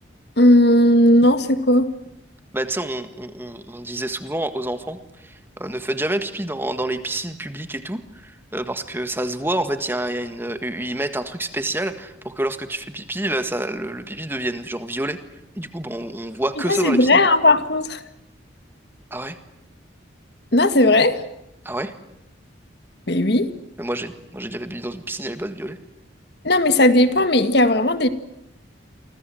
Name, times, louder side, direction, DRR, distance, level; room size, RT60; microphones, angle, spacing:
voice 1, 0.4-1.9 16.7-18.0 20.5-21.2 23.1-23.5 26.4-28.1, left 1 dB, 55° left, 10 dB, 1.8 m, -16 dB
voice 2, 2.5-15.2 15.6-17.2 19.1-19.4 21.6-21.9 23.8-25.8, right 1 dB, 10° right, 9 dB, 1.7 m, -28 dB
29.5 x 24.5 x 7.8 m, 0.83 s
head